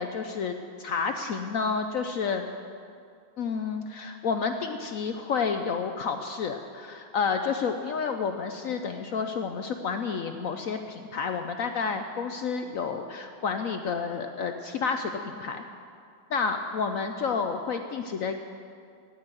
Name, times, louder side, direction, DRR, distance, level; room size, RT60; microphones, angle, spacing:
voice 1, 0.0-2.5 3.4-15.6 16.3-18.3, left 5 dB, 80° left, 6 dB, 0.7 m, -30 dB
17.0 x 6.3 x 9.0 m, 2.3 s
omnidirectional pair, 2.2 m